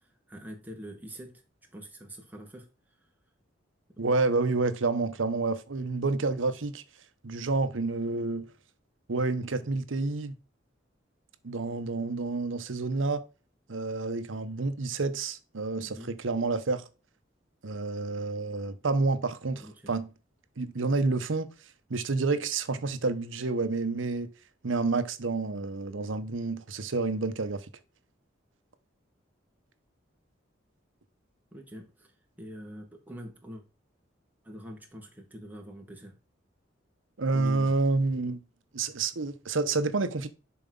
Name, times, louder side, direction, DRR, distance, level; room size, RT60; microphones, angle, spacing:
voice 1, 0.3-1.4 1.7-2.7 15.8-16.1 19.5-19.9 31.5-32.1 32.4-33.6 34.4-36.2 37.3-37.7, equal, 10° right, 1.7 m, -44 dB
voice 2, 4.0-6.8 7.2-8.5 9.1-10.3 11.4-13.2 13.7-16.8 17.6-20.1 20.6-21.5 21.9-24.3 24.6-27.6 37.2-38.4 38.7-40.3, right 3 dB, 85° right, 0.9 m, -29 dB
7.1 x 4.8 x 3.8 m
head